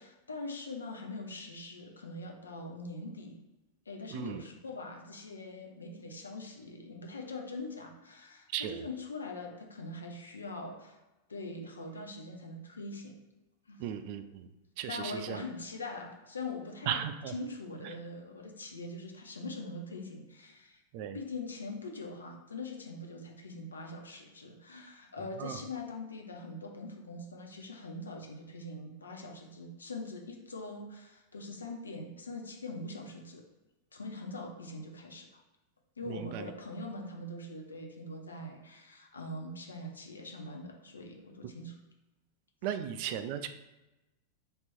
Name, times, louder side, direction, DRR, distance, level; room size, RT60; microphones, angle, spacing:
voice 1, 0.0-3.4 3.9-11.0 11.3-13.1 13.7-14.0 14.9-20.8 21.1-33.4 33.9-35.4 36.0-41.8, left 2 dB, 75° left, 2 dB, 0.6 m, -42 dB
voice 2, 4.1-4.4 8.5-8.8 13.8-14.5 14.8-15.4 16.9-17.3 17.8-17.9 20.9-21.2 25.4-25.6 36.1-36.5 42.6-43.5, right 10 dB, 45° right, 10 dB, 0.3 m, -36 dB
3.3 x 2.9 x 4.3 m, 1.0 s
figure-of-eight pair, 90°, 0 cm